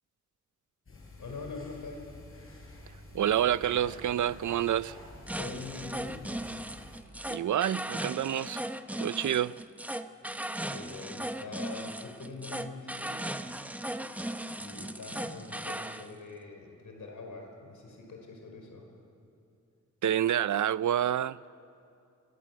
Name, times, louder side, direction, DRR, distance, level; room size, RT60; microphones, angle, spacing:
sound 1, 0.9-7.0, left 1 dB, 45° left, 6.3 m, -49 dB
voice 1, 1.2-2.2 5.4-6.4 10.7-13.3 14.6-18.9, left 3 dB, 80° left, 4.9 m, -43 dB
voice 2, 3.1-5.0 7.3-8.6 9.0-9.5 20.0-21.4, right 10 dB, 75° right, 0.6 m, -28 dB
sound 2, 5.3-16.1, right 1 dB, 5° right, 0.9 m, -37 dB
28.0 x 20.5 x 7.5 m
wide cardioid pair, 110°, 30 cm